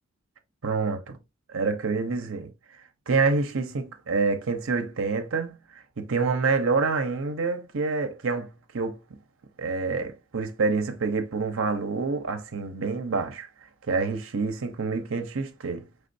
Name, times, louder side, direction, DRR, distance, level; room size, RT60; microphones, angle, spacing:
voice 1, 0.6-1.2 1.5-2.5 3.1-5.6 6.0-9.0 9.6-13.5 13.9-15.9, right 4 dB, 65° right, 0.7 m, -27 dB
4.4 x 3.5 x 2.6 m
head